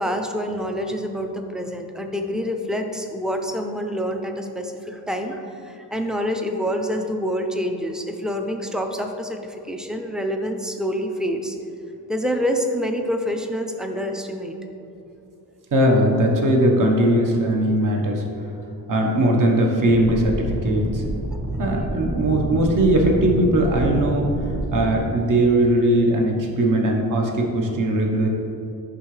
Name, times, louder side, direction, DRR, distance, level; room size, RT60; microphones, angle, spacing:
voice 1, 0.0-11.6 12.1-14.6, equal, ahead, 4 dB, 0.4 m, -27 dB
voice 2, 15.7-18.2 18.9-21.0 21.6-24.3 24.7-28.3, right 1 dB, 55° right, 1 dB, 1.0 m, -19 dB
sound 1, 19.9-25.0, right 1 dB, 30° right, 1.0 m, -28 dB
11.0 x 3.7 x 3.2 m, 2.8 s
wide cardioid pair, 130°, 39 cm